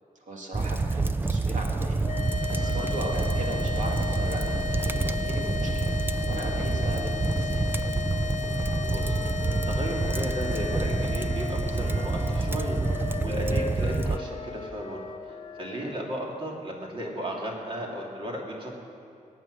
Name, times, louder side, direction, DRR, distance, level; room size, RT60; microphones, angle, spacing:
voice 1, 0.2-2.1 2.4-6.0 6.3-7.7 15.7-15.9, right 1 dB, 60° right, 0 dB, 2.5 m, -37 dB
sound 1, 0.5-14.2, right 3 dB, 15° right, 0.4 m, -27 dB
sound 2, 2.0-16.4, left 7 dB, 65° left, 0.7 m, -36 dB
Wind instrument woodwind instrument, 7.9-15.9, left 2 dB, 35° left, 0.9 m, -41 dB
voice 2, 8.5-9.4 9.7-15.0 15.3-18.8, equal, 40° right, -1 dB, 2.7 m, -35 dB
20.5 x 8.8 x 6.3 m, 2.5 s
wide cardioid pair, 120°, 14 cm